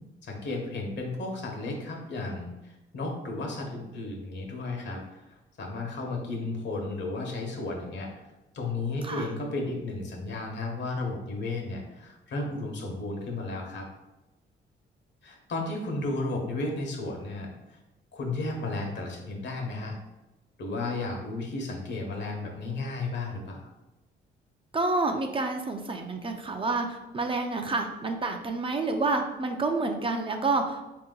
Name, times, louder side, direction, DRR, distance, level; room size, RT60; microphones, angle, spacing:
voice 1, 0.2-5.2 5.6-8.3 8.5-13.9 15.2-17.8 18.1-20.0 20.6-23.7, left 2 dB, 65° left, 1 dB, 1.0 m, -33 dB
voice 2, 24.7-30.9, right 3 dB, 25° right, 4 dB, 0.5 m, -29 dB
3.6 x 2.9 x 3.8 m, 1.0 s
cardioid pair, 90°, 20 cm